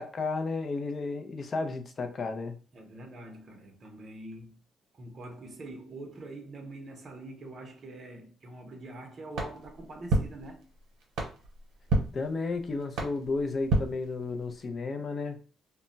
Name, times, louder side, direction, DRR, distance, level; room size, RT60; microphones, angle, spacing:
voice 1, 0.0-2.6 12.1-15.4, left 3 dB, 45° left, 0.5 m, -33 dB
voice 2, 2.7-4.6 4.9-10.6 11.4-11.5, right 2 dB, 45° right, 0.7 m, -44 dB
sound 1, 9.3-14.7, right 2 dB, 85° right, 0.8 m, -33 dB
2.2 x 2.1 x 3.8 m
cardioid pair, 90°, 0 cm